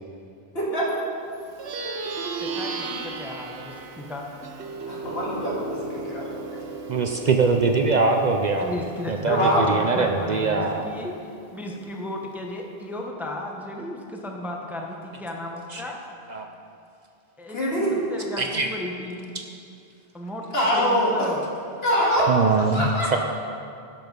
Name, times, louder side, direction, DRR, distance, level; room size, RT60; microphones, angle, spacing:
voice 1, 0.5-1.0 4.9-6.3 6.6-6.7 9.3-9.6 17.5-17.9 20.5-21.1 21.8-22.3 22.7-23.2, equal, 70° left, -4 dB, 2.1 m, -24 dB
Plucked string instrument, 1.5-11.2, right 3 dB, 85° right, 1.0 m, -36 dB
voice 2, 2.4-4.2 8.6-16.0 17.4-19.3 20.1-20.5 20.7-21.4, left 1 dB, ahead, 0 dB, 0.8 m, -34 dB
voice 3, 6.9-8.8 9.1-10.9 15.7-15.8 16.3-16.5 18.4-18.7 22.3-23.2, right 4 dB, 50° right, 4 dB, 0.6 m, -22 dB
12.0 x 6.0 x 5.3 m, 2.5 s
omnidirectional pair, 1.1 m